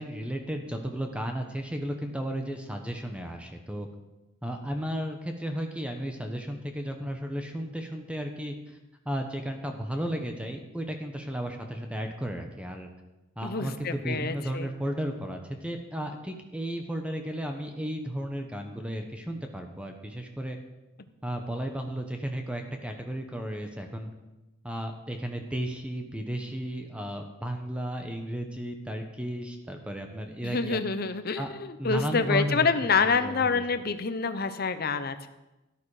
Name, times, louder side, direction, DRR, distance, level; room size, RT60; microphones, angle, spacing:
voice 1, 0.0-3.9 4.4-8.8 9.0-12.9 13.4-20.6 21.2-24.1 24.6-30.9 31.4-31.5 31.8-33.6, equal, 5° right, 4 dB, 1.0 m, -34 dB
voice 2, 13.4-14.7 30.4-35.3, left 4 dB, 50° left, 10 dB, 0.8 m, -27 dB
13.0 x 11.5 x 4.9 m, 1.0 s
head